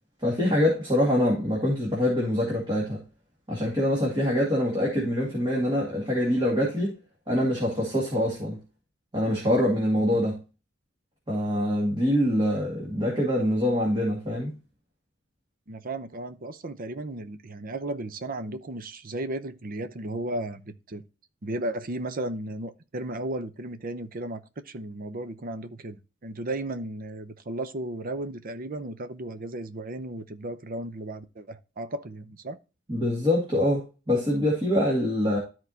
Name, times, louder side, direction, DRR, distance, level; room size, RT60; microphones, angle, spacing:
voice 1, 0.2-3.0 3.5-6.9 7.3-8.6 9.1-10.4 11.3-14.5 32.9-35.4, left 1 dB, 25° right, 2.2 m, -24 dB
voice 2, 15.7-21.0 21.4-32.6, right 1 dB, 45° right, 0.7 m, -35 dB
13.0 x 4.6 x 2.8 m
head